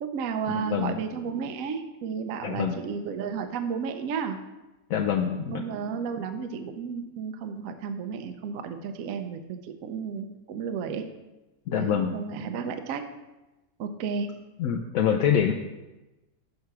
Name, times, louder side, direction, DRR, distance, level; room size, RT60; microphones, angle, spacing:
voice 1, 0.0-4.4 5.5-11.1 11.7-13.1 13.8-14.4, right 6 dB, 65° right, 7 dB, 0.9 m, -33 dB
voice 2, 0.5-1.0 2.4-2.8 4.9-5.6 11.7-12.2 14.6-15.5, left 8 dB, 75° left, 1 dB, 0.8 m, -25 dB
6.6 x 4.8 x 5.8 m, 1.1 s
omnidirectional pair, 1.9 m